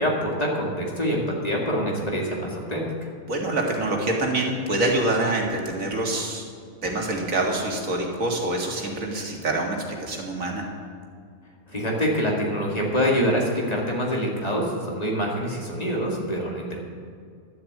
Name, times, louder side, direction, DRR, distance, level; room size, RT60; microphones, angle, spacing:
voice 1, 0.0-2.9 11.7-16.8, equal, 25° left, -2 dB, 2.4 m, -25 dB
voice 2, 3.3-6.4 6.8-10.7, right 2 dB, 65° right, 0 dB, 2.2 m, -26 dB
12.0 x 7.5 x 8.3 m, 2.2 s
omnidirectional pair, 1.5 m